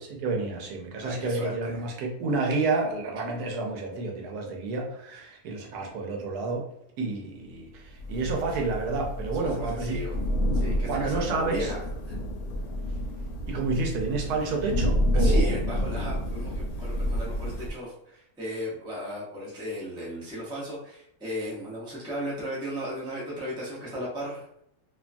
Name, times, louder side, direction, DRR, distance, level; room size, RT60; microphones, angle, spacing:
voice 1, 0.0-6.7 7.0-10.0 10.8-11.7 13.5-15.5, right 3 dB, 85° right, 1 dB, 1.2 m, -30 dB
voice 2, 1.0-1.8 9.3-10.2 10.5-11.8 12.1-12.2 15.1-24.5, equal, 5° right, -6 dB, 0.4 m, -36 dB
Thunder / Rain, 8.0-17.7, equal, 80° left, 1.1 m, -29 dB
2.8 x 2.3 x 2.4 m, 0.74 s
omnidirectional pair, 1.6 m